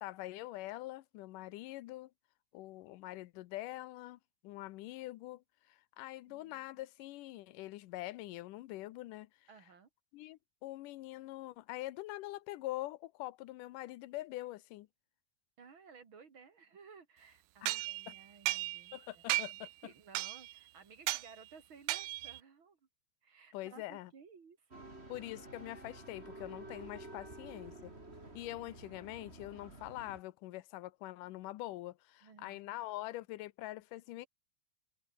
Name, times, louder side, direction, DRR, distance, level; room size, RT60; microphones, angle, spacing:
voice 1, 0.0-2.1 2.5-9.5 10.1-14.9 17.6-18.1 18.9-19.7 23.5-24.1 25.1-27.9 28.3-34.3, left 17 dB, 85° left, 2.4 m, -44 dB
voice 2, 6.3-6.6 9.5-9.9 15.6-19.2 19.5-22.8 23.2-24.9 32.2-32.7, right 5 dB, 45° right, 2.6 m, -58 dB
sound 1, 17.7-19.0 19.3-19.7 20.2-20.6 21.1-21.3 21.9-22.4, right 19 dB, 80° right, 2.1 m, -35 dB
sound 2, 24.7-30.2, right 2 dB, 20° right, 4.8 m, -51 dB
omnidirectional pair, 3.6 m